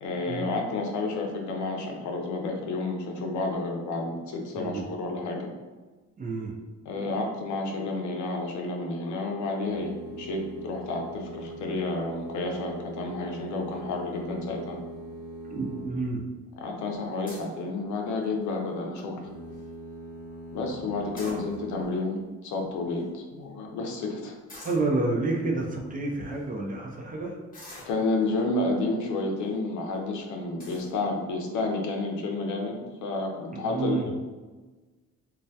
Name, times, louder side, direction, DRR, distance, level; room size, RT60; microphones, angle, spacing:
voice 1, 0.0-5.5 6.9-14.8 16.6-19.2 20.5-24.3 27.9-34.1, left 2 dB, 75° left, 1 dB, 0.5 m, -30 dB
voice 2, 6.2-6.5 15.5-16.2 21.2-21.8 24.6-27.4 33.5-34.1, right 3 dB, 30° right, 0 dB, 0.4 m, -30 dB
sound 1, 9.6-16.4 19.1-21.9, right 1 dB, 65° right, 1.0 m, -41 dB
sound 2, 17.3-17.6 18.2-18.5 19.0-19.1 19.3-19.6 20.9-21.8 22.6-22.7 22.9-23.0 24.5-24.9 25.6-25.7 26.3-26.4 27.5-28.4 29.2-29.5 29.9-30.0 30.6-30.9, left 1 dB, 30° left, 0.9 m, -46 dB
2.3 x 2.0 x 2.6 m, 1.3 s
cardioid pair, 90°, 30 cm